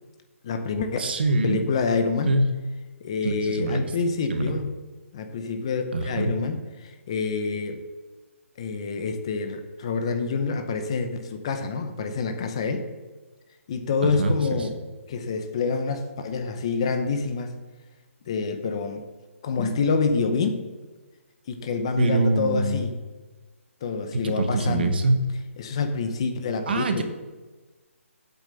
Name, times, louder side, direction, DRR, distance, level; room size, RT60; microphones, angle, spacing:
voice 1, 0.4-1.1 1.4-2.3 3.0-4.7 5.1-7.8 8.6-12.9 13.7-14.8 15.1-17.5 18.3-19.0 19.4-20.7 21.5-22.9 23.8-24.9 25.6-27.0, left 4 dB, 25° left, 7 dB, 0.7 m, -27 dB
voice 2, 1.0-1.6 2.3-2.5 3.2-3.9 4.3-4.6 5.9-6.4 14.2-14.6 22.0-22.8 24.2-25.2 26.7-27.0, right 2 dB, 45° right, 8 dB, 1.2 m, -24 dB
8.4 x 7.1 x 6.9 m, 1.2 s
hypercardioid pair, 175°, 8 cm